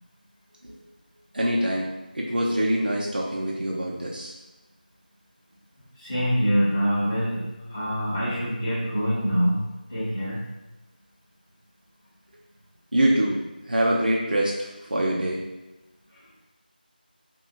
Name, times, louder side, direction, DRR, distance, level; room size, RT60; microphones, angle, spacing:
voice 1, 1.3-4.3 12.9-15.4, right 1 dB, 70° right, -3 dB, 0.4 m, -25 dB
voice 2, 5.9-10.4 16.1-16.3, equal, 15° left, -14 dB, 0.8 m, -25 dB
2.7 x 2.1 x 2.4 m, 1.0 s
figure-of-eight pair, 175°, 5 cm